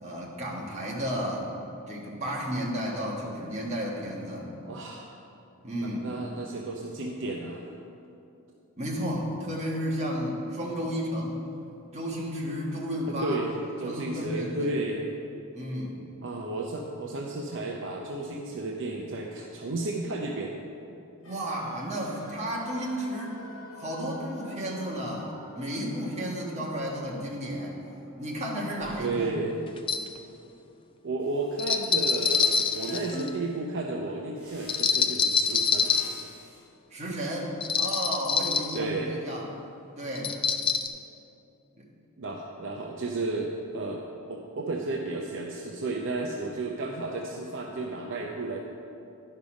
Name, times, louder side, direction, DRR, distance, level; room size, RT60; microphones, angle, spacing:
voice 1, 0.0-1.5 1.9-4.5 5.6-6.1 8.8-11.5 11.9-13.4 13.8-14.7 15.5-16.0 21.2-23.4 23.8-27.8 28.2-29.4 36.9-37.5 37.8-39.5 40.0-40.3 41.8-41.9, equal, 30° right, -3 dB, 1.5 m, -32 dB
voice 2, 4.7-5.1 5.8-7.6 13.2-13.5 13.8-15.0 16.2-20.5 29.0-29.5 31.0-35.9 38.7-39.2 42.2-44.0 44.3-48.6, right 2 dB, 55° right, 0 dB, 0.6 m, -33 dB
sound 1, 21.2-31.2 31.4-31.5, left 2 dB, 60° left, 1.1 m, -50 dB
sound 2, 28.8-28.9 29.8-30.1 31.6-33.4 34.7-36.2 37.6-38.8 40.1-40.9, left 6 dB, 25° left, 0.3 m, -26 dB
sound 3, 31.2-33.4 34.4-36.6, equal, 5° right, 2.3 m, -50 dB
11.5 x 5.4 x 5.2 m, 2.7 s
head